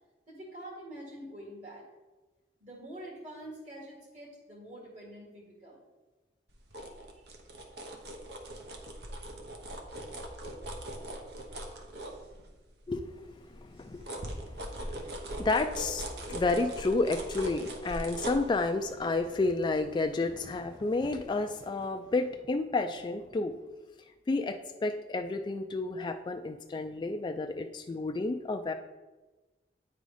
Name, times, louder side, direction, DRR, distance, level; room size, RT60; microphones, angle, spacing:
voice 1, 0.3-1.9 2.6-5.8 6.7-6.9 7.1-7.3, right 1 dB, 45° right, -4 dB, 2.0 m, -46 dB
sound 1, 6.5-12.8 13.2-20.7 21.1-21.3, right 1 dB, 70° right, 1.0 m, -41 dB
voice 2, 13.7-14.1 15.4-23.5 24.3-28.7, left 3 dB, 25° left, 6 dB, 0.3 m, -30 dB
9.1 x 3.9 x 4.9 m, 1.2 s
head